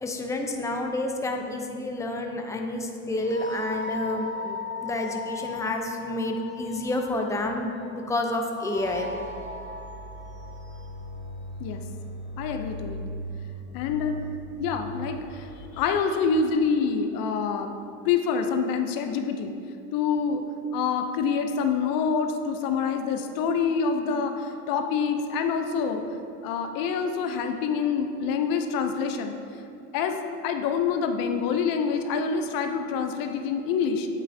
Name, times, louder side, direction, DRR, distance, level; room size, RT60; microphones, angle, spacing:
voice 1, 0.0-4.6 4.8-9.1, left 2 dB, 10° left, 3 dB, 0.7 m, -29 dB
sound 1, 1.2-15.8, left 2 dB, 30° left, 1.3 m, -38 dB
voice 2, 12.4-13.0 13.7-14.1 14.6-17.7 18.0-19.5 19.9-20.4 20.7-26.0 26.4-29.3 29.9-34.1, left 6 dB, 60° left, 6 dB, 0.8 m, -26 dB
8.4 x 8.1 x 2.8 m, 2.6 s
supercardioid pair, 90°, 38 cm